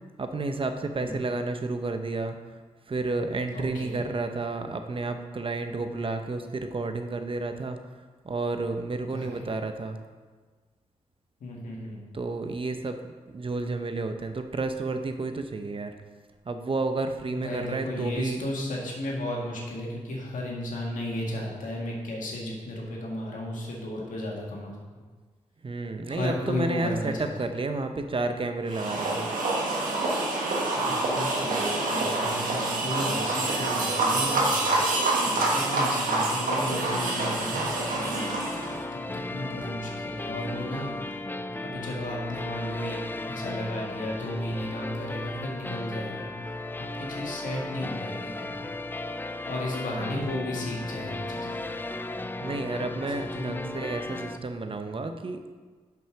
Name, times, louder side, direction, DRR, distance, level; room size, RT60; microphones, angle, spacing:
voice 1, 0.2-2.6 2.9-7.8 8.2-10.0 12.1-13.0 13.3-15.9 16.4-18.4 25.6-29.3 52.4-55.4, right 3 dB, 40° right, 7 dB, 0.8 m, -31 dB
voice 2, 3.5-4.0 9.0-9.4 11.4-12.0 17.3-24.8 26.1-27.5 30.7-31.5 31.9-34.8 35.2-37.7 38.5-41.0 41.6-43.0 43.3-46.3 46.8-48.6 49.5-51.6 52.8-53.7, left 1 dB, 70° left, -2 dB, 1.9 m, -34 dB
sound 1, 28.7-38.8, right 2 dB, 85° right, 1.4 m, -26 dB
sound 2, 36.9-54.4, left 2 dB, 15° left, 0.4 m, -36 dB
5.9 x 5.5 x 6.1 m, 1.4 s
supercardioid pair, 50°, 14 cm